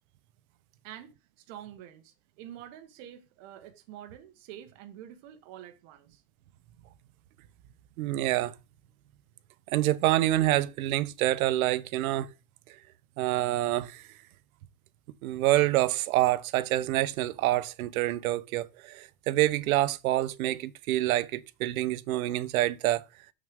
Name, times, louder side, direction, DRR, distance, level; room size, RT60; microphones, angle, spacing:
voice 1, 0.8-6.2, right 11 dB, 40° right, 1.3 m, -47 dB
voice 2, 8.0-8.5 9.7-12.3 13.2-14.0 15.2-23.0, right 15 dB, 70° right, 0.8 m, -27 dB
6.5 x 6.4 x 3.6 m
supercardioid pair, 170°, 43 cm